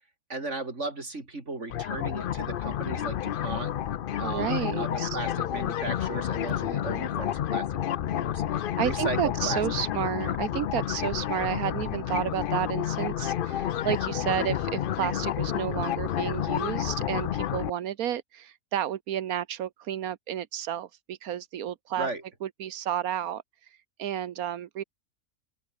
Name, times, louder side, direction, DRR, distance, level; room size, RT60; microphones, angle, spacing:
voice 1, 0.3-3.7 4.2-8.4 8.8-9.6 22.0-22.2, right 2 dB, 55° right, 4.5 m, -36 dB
sound 1, 1.7-17.7, left 10 dB, 60° left, 0.5 m, -30 dB
voice 2, 4.2-5.2 8.5-22.1 22.4-24.8, right 10 dB, 85° right, 1.4 m, -31 dB
omnidirectional pair, 1.5 m